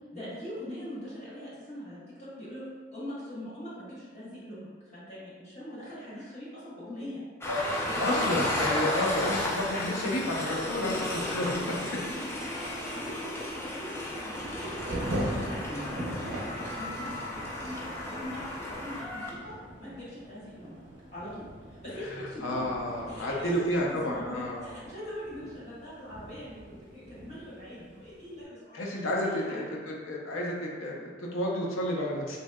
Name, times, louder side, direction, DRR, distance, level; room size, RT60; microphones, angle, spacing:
voice 1, 0.1-2.6 2.9-7.2 7.8-8.3 10.4-20.8 21.1-22.7 23.1-23.8 24.1-26.6 26.9-29.7, equal, 35° left, -9 dB, 1.0 m, -42 dB
Train, 7.4-19.3, left 1 dB, 15° left, 0.3 m, -34 dB
voice 2, 8.0-12.0 12.3-12.4 15.5-16.4 22.0-24.7 28.7-32.4, left 1 dB, 85° left, -3 dB, 0.6 m, -31 dB
Thunder / Rain, 14.0-28.4, equal, 65° right, 0.5 m, -41 dB
3.2 x 2.7 x 2.2 m, 1.5 s
head